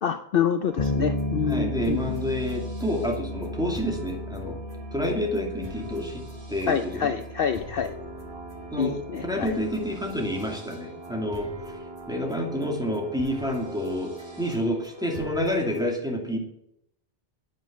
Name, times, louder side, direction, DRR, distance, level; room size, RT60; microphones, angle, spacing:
voice 1, 0.0-2.2 6.7-7.9 8.8-9.6, left 7 dB, 60° left, 9 dB, 0.8 m, -27 dB
sound 1, 0.6-15.8, left 1 dB, 20° right, 2.1 m, -44 dB
Bass guitar, 0.8-10.4, left 1 dB, 35° left, 1.1 m, -34 dB
voice 2, 1.5-4.6 4.9-6.2 6.5-7.1 8.7-9.0 9.2-11.5 12.1-16.4, equal, 5° right, 0 dB, 2.5 m, -28 dB
sound 2, 7.9-14.6, right 4 dB, 60° right, 1.3 m, -44 dB
9.6 x 9.1 x 8.1 m, 0.81 s
omnidirectional pair, 1.2 m